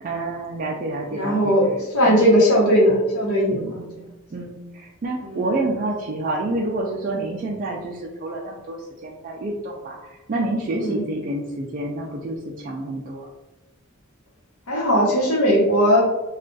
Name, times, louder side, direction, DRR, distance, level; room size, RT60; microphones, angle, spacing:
voice 1, 0.0-1.6 2.0-2.4 3.5-3.9 4.3-13.3, right 2 dB, 40° right, -3 dB, 0.4 m, -28 dB
voice 2, 1.1-3.6 5.2-5.4 10.7-11.0 14.7-16.0, equal, 90° left, -3 dB, 1.0 m, -18 dB
2.4 x 2.3 x 3.7 m, 1.0 s
head